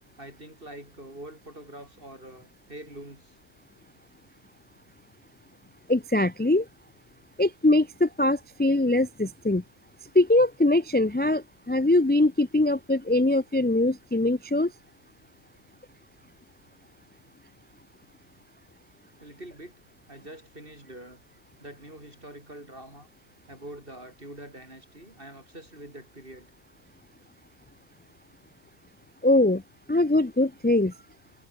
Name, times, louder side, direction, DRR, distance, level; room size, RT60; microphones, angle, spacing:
voice 1, 0.2-3.4 19.2-19.8 20.1-21.2 21.6-23.1 23.5-26.5, right 1 dB, 45° right, 7.8 m, -45 dB
voice 2, 5.9-6.7 7.4-9.6 10.1-14.7 29.2-29.6 29.9-30.9, left 2 dB, 15° left, 0.4 m, -22 dB
omnidirectional pair, 1.3 m